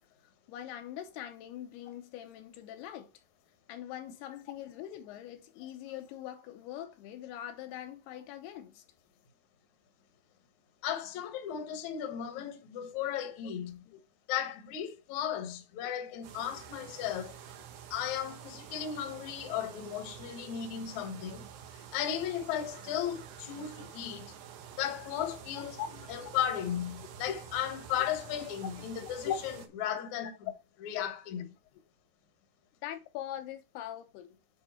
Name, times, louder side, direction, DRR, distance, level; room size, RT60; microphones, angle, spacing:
voice 1, 0.2-3.1 3.7-8.8 13.9-14.0 25.5-25.7 25.9-26.1 28.8-29.1 30.2-30.3 31.3-31.5 31.7-31.8 32.8-34.4, left 11 dB, 80° left, 2.8 m, -43 dB
voice 2, 10.8-13.8 14.3-17.4 17.9-21.5 21.9-24.3 24.8-30.5 30.8-31.5, left 10 dB, 65° left, 2.0 m, -35 dB
sound 1, 16.2-29.7, right 8 dB, 90° right, 3.2 m, -49 dB
9.6 x 3.7 x 4.3 m
omnidirectional pair, 4.7 m